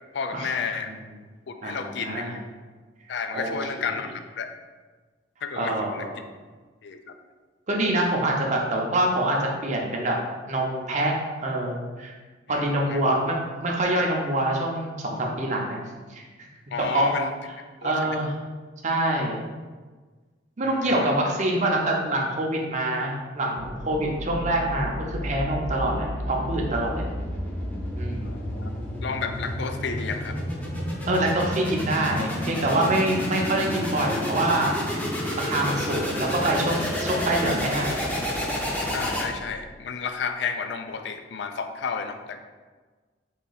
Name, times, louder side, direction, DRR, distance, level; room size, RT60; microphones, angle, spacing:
voice 1, 0.1-0.9 1.5-2.3 3.1-4.1 4.4-4.5 5.4-6.1 6.8-7.1 12.5-13.0 16.7-17.3 17.8-18.2 20.6-21.2 28.2-28.7 29.0-30.4 38.9-42.4, left 5 dB, 60° left, 7 dB, 0.4 m, -32 dB
voice 2, 1.6-2.3 3.3-3.9 5.6-6.2 7.7-10.2 10.5-11.1 11.4-12.1 12.5-15.8 16.1-16.5 16.9-17.2 17.8-18.3 18.8-19.4 20.6-27.0 28.0-28.3 31.1-34.7 35.3-38.0, right 1 dB, 40° right, -1 dB, 0.6 m, -25 dB
sound 1, 23.6-39.7, equal, 10° left, 0.6 m, -30 dB
3.9 x 2.8 x 4.0 m, 1.4 s
head